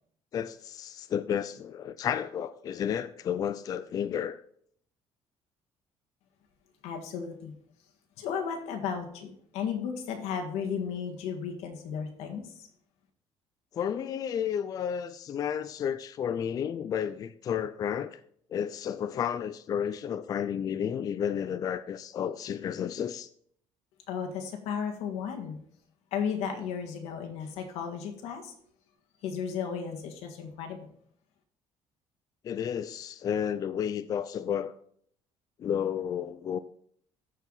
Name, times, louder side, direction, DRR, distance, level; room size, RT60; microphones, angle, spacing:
voice 1, 0.3-4.4 13.7-18.2 18.5-23.3 32.4-34.7 35.6-36.6, left 8 dB, 35° left, 0.4 m, -32 dB
voice 2, 6.8-7.5 8.2-12.6 24.1-25.6 26.1-28.5 29.2-30.9, left 7 dB, 90° left, 1.7 m, -34 dB
13.5 x 4.7 x 3.9 m
cardioid pair, 155°, 11 cm